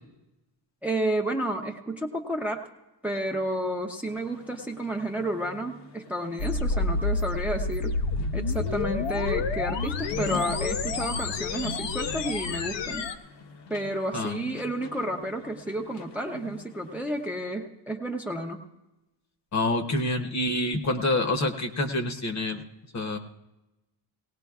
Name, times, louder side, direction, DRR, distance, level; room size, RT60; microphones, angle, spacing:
voice 1, 0.8-2.6 3.0-8.0 8.3-13.1 13.7-18.6, right 1 dB, 5° right, 2 dB, 0.5 m, -31 dB
sound 1, 4.0-17.4, left 4 dB, 75° left, 1.0 m, -44 dB
sound 2, 6.4-13.1, left 3 dB, 90° left, 0.8 m, -29 dB
voice 2, 19.5-22.6 22.9-23.2, left 2 dB, 40° left, 6 dB, 0.8 m, -27 dB
18.5 x 18.5 x 2.3 m, 1.0 s
wide cardioid pair, 180°, 43 cm